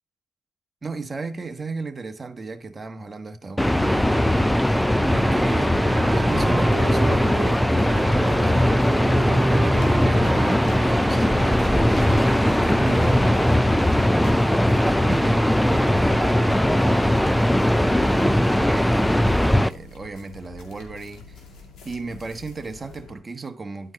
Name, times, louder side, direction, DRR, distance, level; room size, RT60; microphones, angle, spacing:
voice 1, 0.8-21.4 21.8-23.9, right 3 dB, 25° right, 1.3 m, -35 dB
sound 1, 3.6-19.7, left 1 dB, 5° left, 0.4 m, -19 dB
Wind instrument woodwind instrument, 5.0-12.7, right 6 dB, 50° right, 0.6 m, -33 dB
sound 2, 6.2-23.2, left 4 dB, 75° left, 2.3 m, -44 dB
11.0 x 4.6 x 4.0 m
cardioid pair, 90°, 0 cm